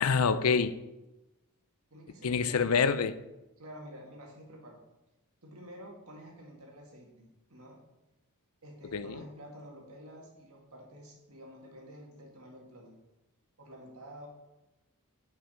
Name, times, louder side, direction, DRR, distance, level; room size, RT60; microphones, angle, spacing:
voice 1, 0.0-0.7 2.2-3.2 8.9-9.2, left 5 dB, 75° left, 0.5 m, -26 dB
voice 2, 1.9-2.7 3.6-4.8 5.4-7.8 8.6-13.0 13.6-14.3, equal, 70° right, 2.1 m, -49 dB
9.1 x 5.6 x 5.0 m
head